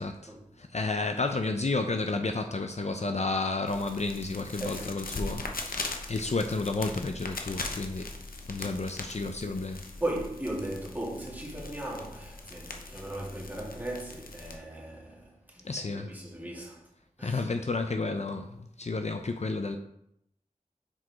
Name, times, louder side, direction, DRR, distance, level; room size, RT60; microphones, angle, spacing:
voice 1, 0.0-8.1 8.5-9.8 15.6-16.2 17.2-19.8, left 3 dB, 50° left, 0.5 m, -31 dB
sound 1, 3.7-14.6, left 2 dB, 85° left, 0.8 m, -40 dB
voice 2, 4.6-5.0 10.0-16.8 17.2-17.4 18.0-18.1, right 1 dB, 10° right, 2.1 m, -37 dB
6.2 x 4.7 x 4.7 m
wide cardioid pair, 55°, 14 cm